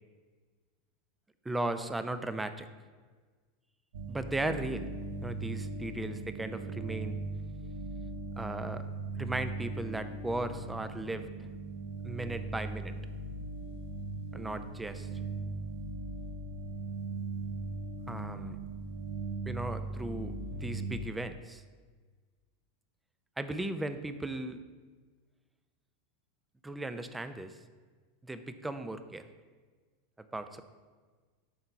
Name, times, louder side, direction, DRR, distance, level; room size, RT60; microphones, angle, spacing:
voice 1, 1.4-2.7 4.1-4.9 5.2-7.2 8.4-8.8 9.2-11.3 12.0-12.9 14.3-15.1 18.1-18.6 19.4-21.6 23.4-24.6 26.6-27.6 28.2-29.3 30.2-30.6, right 2 dB, 10° right, 10 dB, 0.6 m, -36 dB
sound 1, 3.9-21.0, right 3 dB, 75° right, 0.9 m, -39 dB
7.7 x 4.6 x 5.5 m, 1.5 s
hypercardioid pair, 100°, 0 cm